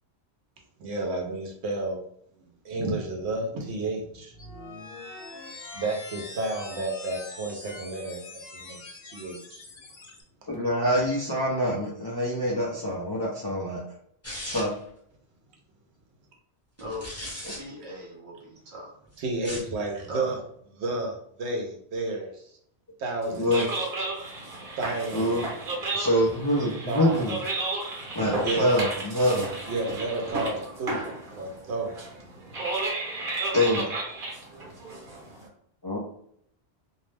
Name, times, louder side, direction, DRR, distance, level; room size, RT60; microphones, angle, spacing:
voice 1, 0.8-2.0 2.6-4.3 5.7-9.6 19.2-20.4 20.8-22.5 23.0-23.5 24.8-25.4 26.9-27.3 28.4-28.7 29.7-31.0 31.3-31.9, right 2 dB, 85° right, 1 dB, 0.9 m, -31 dB
sound 1, 4.3-10.2, left 3 dB, 65° left, 0.8 m, -43 dB
voice 2, 10.5-13.8 14.4-14.7 23.3-23.6 25.1-25.4 25.9-27.4 28.1-29.5 33.5-33.9 35.8-36.0, equal, 40° left, -4 dB, 0.3 m, -25 dB
sound 2, 14.2-14.9 16.8-17.6 19.3-19.8, left 1 dB, 15° left, 0.7 m, -37 dB
voice 3, 17.4-18.9 20.1-20.3, equal, 35° right, -4 dB, 0.6 m, -39 dB
sound 3, 23.2-35.5, right 2 dB, 55° right, 1.0 m, -33 dB
2.6 x 2.0 x 3.2 m, 0.66 s
omnidirectional pair, 1.1 m